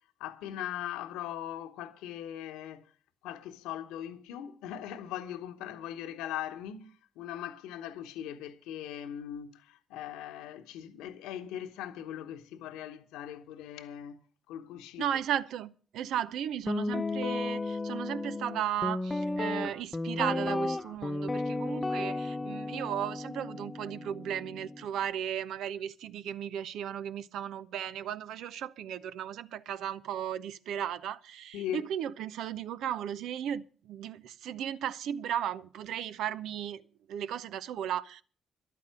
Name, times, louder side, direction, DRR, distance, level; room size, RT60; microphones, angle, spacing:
voice 1, 0.2-2.9 3.2-14.2 14.5-15.1 31.5-31.8, left 11 dB, 80° left, 1.0 m, -40 dB
voice 2, 15.0-36.8 37.1-38.2, right 10 dB, 75° right, 0.7 m, -35 dB
Guitar, 16.7-24.8, left 2 dB, 25° left, 0.7 m, -34 dB
12.0 x 9.4 x 7.5 m
hypercardioid pair, 50°, 0 cm